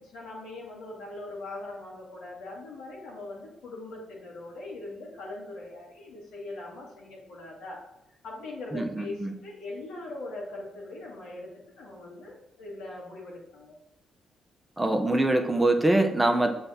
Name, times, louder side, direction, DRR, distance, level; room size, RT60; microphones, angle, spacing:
voice 1, 0.1-7.8 8.2-11.5 11.8-13.7, left 2 dB, 80° left, -3 dB, 2.0 m, -41 dB
voice 2, 8.7-9.3 14.8-16.5, right 2 dB, 15° right, 5 dB, 0.8 m, -24 dB
6.7 x 3.4 x 4.1 m, 0.89 s
supercardioid pair, 55°, 0 cm